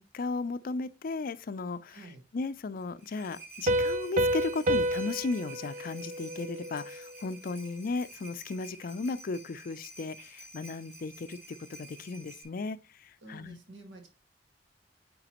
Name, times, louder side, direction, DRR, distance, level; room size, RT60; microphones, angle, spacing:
voice 1, 0.0-13.6, left 3 dB, 50° left, 0.4 m, -36 dB
voice 2, 1.9-2.2 13.2-14.1, right 2 dB, 85° right, 1.8 m, -49 dB
sound 1, 2.8-12.4, right 2 dB, 10° right, 2.8 m, -51 dB
Piano, 3.7-7.1, equal, 45° right, 0.5 m, -30 dB
9.1 x 3.9 x 2.9 m
head